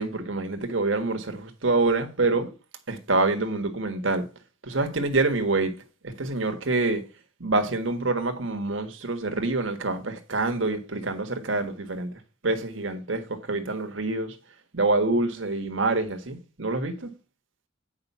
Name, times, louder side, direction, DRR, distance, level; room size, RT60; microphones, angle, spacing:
voice 1, 0.0-2.5 2.9-4.2 4.6-5.7 6.0-7.0 7.4-12.1 12.4-14.3 14.7-17.1, right 3 dB, 70° right, 1.5 m, -26 dB
8.9 x 5.2 x 5.5 m
head